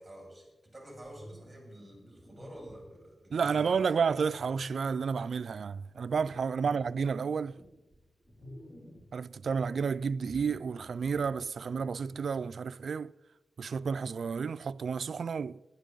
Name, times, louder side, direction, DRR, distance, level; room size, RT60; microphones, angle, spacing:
voice 1, 0.0-4.0 6.6-6.9, right 1 dB, 10° right, 6.2 m, -49 dB
sound 1, 1.0-3.0 3.6-5.6 6.1-6.5 7.0-9.2 9.5-12.3, equal, 20° left, 3.2 m, -53 dB
voice 2, 3.3-7.6 9.1-13.1 13.6-15.6, right 6 dB, 65° right, 0.3 m, -31 dB
19.5 x 11.0 x 3.9 m
wide cardioid pair, 125°, 0 cm